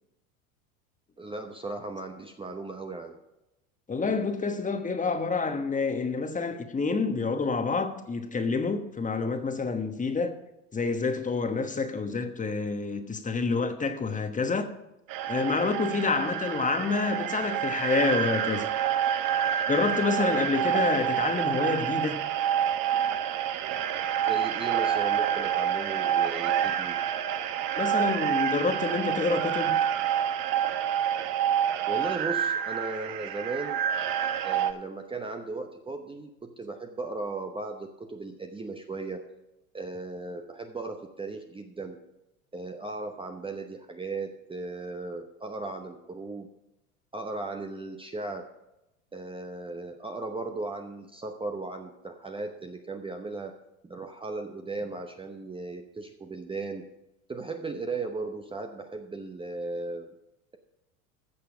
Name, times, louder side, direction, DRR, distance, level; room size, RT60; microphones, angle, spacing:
voice 1, 1.2-3.2 24.2-27.0 31.9-33.8 34.4-39.2 39.7-42.0 42.5-46.5 47.1-48.5 49.1-56.8 57.3-60.1, right 3 dB, 10° right, 0.8 m, -36 dB
voice 2, 3.9-10.3 10.7-14.7 15.3-18.6 19.7-22.2 27.8-29.7, left 4 dB, 20° left, 1.2 m, -28 dB
sound 1, 15.1-34.7, right 9 dB, 50° right, 1.0 m, -28 dB
14.0 x 6.6 x 4.9 m
hypercardioid pair, 80°, 43 cm